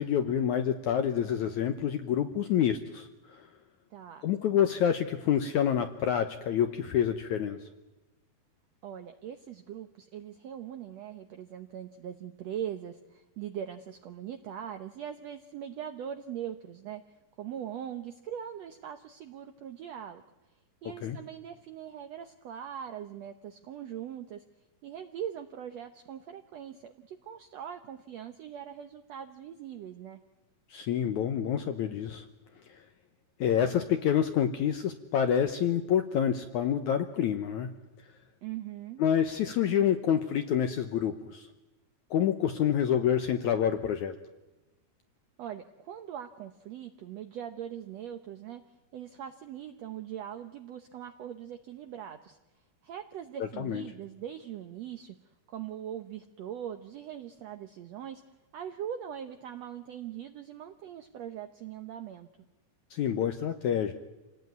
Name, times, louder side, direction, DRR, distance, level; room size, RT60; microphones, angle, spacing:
voice 1, 0.0-3.5 4.2-7.6 21.0-21.2 30.7-32.3 33.4-37.7 39.0-41.5 42.1-44.1 53.6-53.8 62.9-63.9, left 9 dB, 70° left, 8 dB, 1.9 m, -27 dB
voice 2, 3.9-4.2 8.8-20.2 20.8-24.4 24.8-30.2 38.4-39.0 45.4-48.6 48.9-52.4 52.8-55.2 55.5-58.2 58.5-62.3, right 9 dB, 85° right, 8 dB, 1.4 m, -41 dB
27.0 x 18.5 x 9.5 m, 1.1 s
omnidirectional pair, 4.4 m